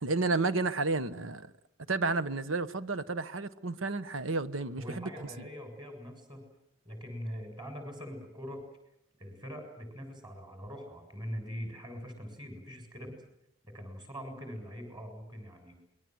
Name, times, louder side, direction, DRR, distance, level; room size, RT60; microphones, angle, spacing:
voice 1, 0.0-1.5 1.9-5.1, right 3 dB, 85° right, 1.3 m, -31 dB
voice 2, 4.8-6.5 6.8-8.6 9.2-13.1 13.6-15.7, equal, 25° right, 7.5 m, -42 dB
27.5 x 22.0 x 7.9 m
head